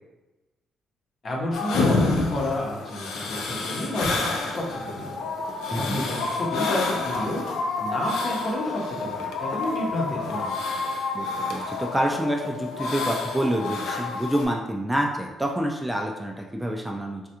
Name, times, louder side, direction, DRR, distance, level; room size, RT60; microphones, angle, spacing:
voice 1, 1.2-7.4 7.8-10.7, left 1 dB, 50° left, -2 dB, 0.9 m, -31 dB
sound 1, 1.5-14.5, left 3 dB, 85° left, 0.4 m, -29 dB
voice 2, 5.7-6.1 11.1-17.2, right 1 dB, 10° right, 1 dB, 0.3 m, -27 dB
3.3 x 2.3 x 2.8 m, 1.1 s
cardioid pair, 90°, 0 cm